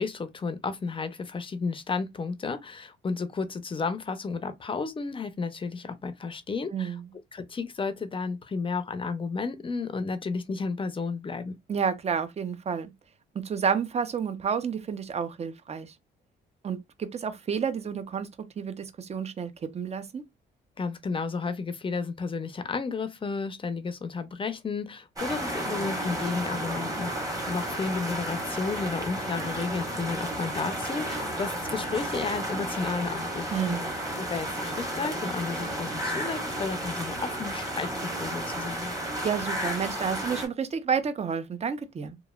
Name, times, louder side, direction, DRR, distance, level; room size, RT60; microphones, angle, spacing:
voice 1, 0.0-7.0 7.3-11.5 20.8-33.8 34.2-38.9, left 4 dB, 25° left, 0.5 m, -32 dB
voice 2, 6.7-7.0 11.7-12.9 13.3-15.9 16.6-20.2 33.5-33.9 39.2-42.2, right 6 dB, 35° right, 0.5 m, -30 dB
sound 1, 25.2-40.5, right 1 dB, 15° right, 1.1 m, -32 dB
3.0 x 2.3 x 2.3 m
cardioid pair, 90°, 20 cm